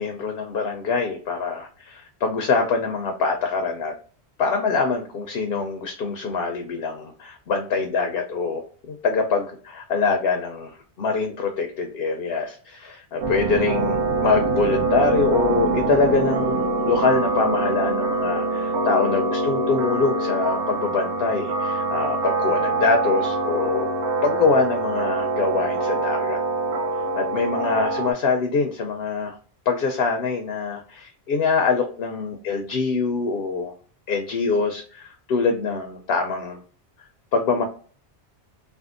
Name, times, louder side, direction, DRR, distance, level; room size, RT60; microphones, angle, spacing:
voice 1, 0.0-3.9 4.4-23.9 24.2-26.4 27.1-29.4 29.7-33.7 34.1-36.6 37.3-37.6, left 4 dB, 65° left, 4 dB, 0.7 m, -24 dB
sound 1, 13.2-28.1, right 3 dB, 80° right, 1.0 m, -24 dB
3.5 x 2.2 x 2.4 m, 0.42 s
omnidirectional pair, 1.1 m